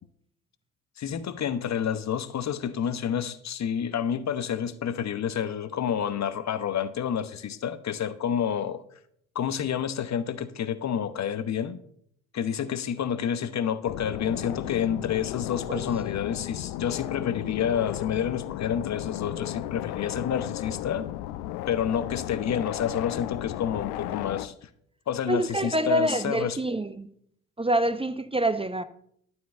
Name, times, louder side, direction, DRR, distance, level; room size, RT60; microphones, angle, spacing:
voice 1, 1.0-8.8 9.3-11.8 12.3-21.1 21.7-24.7 25.1-26.6, left 8 dB, 40° left, 0.9 m, -29 dB
sound 1, 13.8-24.5, left 14 dB, 65° left, 0.7 m, -34 dB
voice 2, 25.3-27.1 27.6-28.8, right 1 dB, 15° right, 0.8 m, -26 dB
12.5 x 4.7 x 7.7 m
figure-of-eight pair, 50°, 42 cm